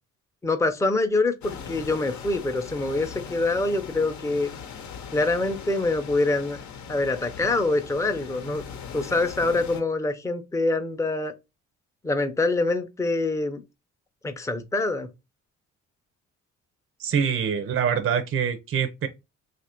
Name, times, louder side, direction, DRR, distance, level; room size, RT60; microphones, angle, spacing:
voice 1, 0.4-4.5 5.1-6.6 6.9-8.6 8.9-11.3 12.0-13.6 14.2-15.1, left 2 dB, 10° left, 0.6 m, -25 dB
sound 1, 1.4-9.8, left 7 dB, 70° left, 0.8 m, -40 dB
voice 2, 17.0-19.1, right 7 dB, 45° right, 0.6 m, -25 dB
2.8 x 2.5 x 4.3 m
cardioid pair, 90°, 30 cm